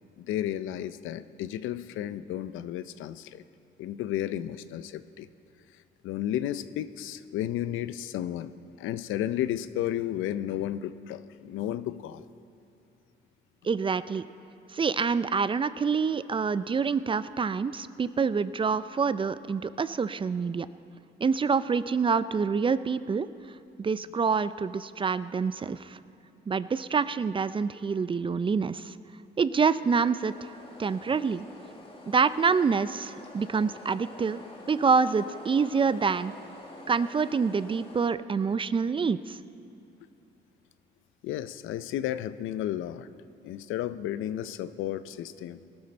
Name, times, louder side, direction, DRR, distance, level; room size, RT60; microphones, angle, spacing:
voice 1, 0.2-3.4 3.8-5.3 6.0-8.5 8.8-12.3 41.2-43.1 43.4-45.6, left 12 dB, 85° left, 14 dB, 0.5 m, -33 dB
voice 2, 13.6-14.2 14.7-20.7 21.2-23.3 23.8-26.0 26.5-28.9 29.4-30.5 30.8-31.5 32.1-36.3 36.9-39.4, right 5 dB, 25° right, 15 dB, 0.4 m, -26 dB
sound 1, 29.4-38.1, left 2 dB, 25° left, 1.8 m, -48 dB
19.5 x 12.5 x 4.4 m, 2.6 s
cardioid pair, 90°, 20 cm